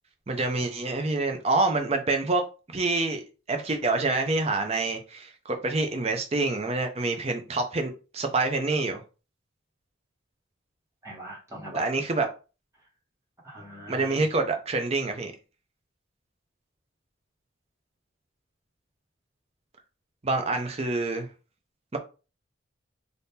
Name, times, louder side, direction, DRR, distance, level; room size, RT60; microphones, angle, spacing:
voice 1, 0.3-2.4 2.7-9.0 11.7-12.3 13.9-15.3 20.2-21.3 21.9-22.0, right 3 dB, 30° right, 0.5 m, -27 dB
voice 2, 11.0-11.9 13.4-14.2, right 1 dB, 15° right, 1.3 m, -41 dB
3.5 x 2.6 x 2.8 m
head